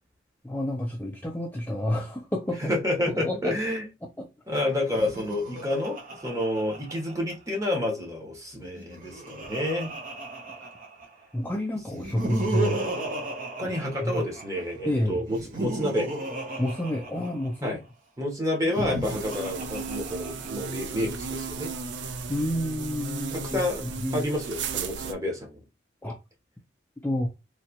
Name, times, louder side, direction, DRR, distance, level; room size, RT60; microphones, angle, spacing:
voice 1, 0.4-2.7 3.1-3.5 4.2-4.3 10.6-10.7 11.3-12.8 13.6-13.7 14.0-14.2 14.9-15.2 16.6-17.8 22.3-24.3 26.0-26.2 27.0-27.3, left 1 dB, 10° left, 0.4 m, -29 dB
voice 2, 2.7-3.8 4.5-6.0 6.2-9.9 13.6-16.1 17.6-17.8 18.2-21.7 23.3-23.8 24.1-25.6, left 1 dB, 15° right, 1.1 m, -29 dB
Laughter, 4.8-7.6 8.7-11.2 11.9-14.6 15.3-17.7 18.6-20.7, right 2 dB, 45° right, 0.9 m, -35 dB
sound 1, 19.0-25.1, right 5 dB, 75° right, 0.5 m, -35 dB
3.3 x 2.8 x 2.9 m
head